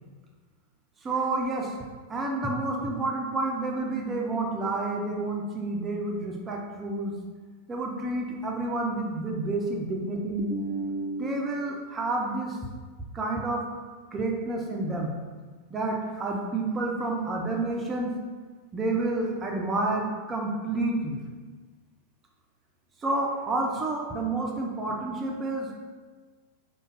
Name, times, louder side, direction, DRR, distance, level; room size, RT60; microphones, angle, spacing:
voice 1, 1.0-1.7 2.1-7.2 7.7-12.6 13.1-13.6 14.1-15.1 15.7-18.1 18.7-21.2 23.0-25.8, right 2 dB, 20° right, -1 dB, 0.5 m, -29 dB
5.0 x 2.2 x 3.9 m, 1.5 s
figure-of-eight pair, 90°, 0 cm